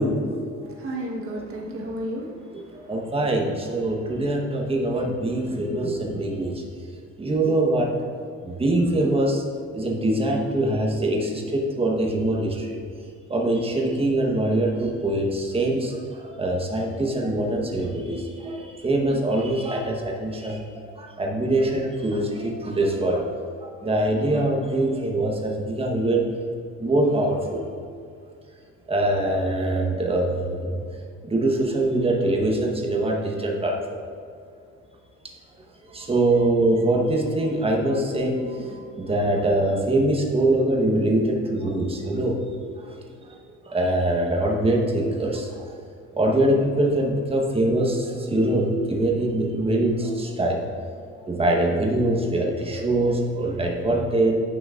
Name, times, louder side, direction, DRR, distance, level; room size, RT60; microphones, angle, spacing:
voice 1, 0.0-0.5 1.7-1.8 2.7-7.9 8.4-9.4 9.7-12.8 13.3-23.3 23.6-26.2 26.8-27.6 28.9-30.8 31.2-34.0 35.9-42.4 42.8-43.0 43.7-45.7 46.1-50.6 51.3-54.3, right 1 dB, 20° right, 0 dB, 1.1 m, -23 dB
voice 2, 0.6-3.1, right 1 dB, 45° right, -1 dB, 1.4 m, -33 dB
9.9 x 6.0 x 2.5 m, 2.3 s
cardioid pair, 125°, 31 cm